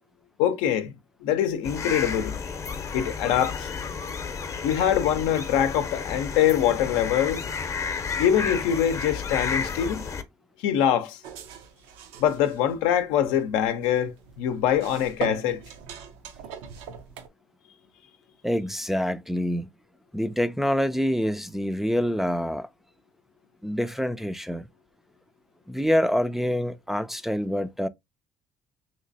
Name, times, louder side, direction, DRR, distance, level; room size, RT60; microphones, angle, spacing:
voice 1, 0.4-0.9 1.2-2.4 2.9-3.7 4.6-7.4 8.2-10.0 10.6-11.2 12.2-15.6, left 10 dB, 85° left, 0.6 m, -24 dB
sound 1, 1.6-10.2, left 5 dB, 35° left, 0.7 m, -32 dB
sound 2, 11.2-17.3, right 8 dB, 85° right, 0.5 m, -41 dB
voice 2, 18.4-19.7 20.1-22.7 23.6-24.7 25.7-27.9, equal, 5° right, 0.3 m, -26 dB
3.1 x 2.9 x 2.6 m
supercardioid pair, 70°, 9 cm